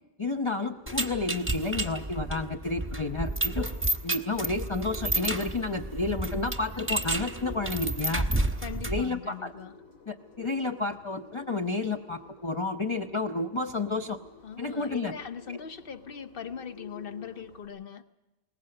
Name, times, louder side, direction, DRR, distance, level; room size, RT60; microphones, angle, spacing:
voice 1, 0.2-3.7 4.0-8.3 8.9-9.5 10.1-14.2 14.6-15.1 15.5-15.6, left 3 dB, 30° left, 4 dB, 0.6 m, -31 dB
Bird, 0.7-17.7, left 4 dB, 80° left, 2.9 m, -51 dB
sound 1, 0.9-9.1, right 2 dB, 10° right, 1.0 m, -31 dB
voice 2, 8.6-9.7 14.4-18.0, left 7 dB, 45° left, 9 dB, 1.0 m, -40 dB
21.5 x 19.5 x 7.8 m, 1.0 s
omnidirectional pair, 1.4 m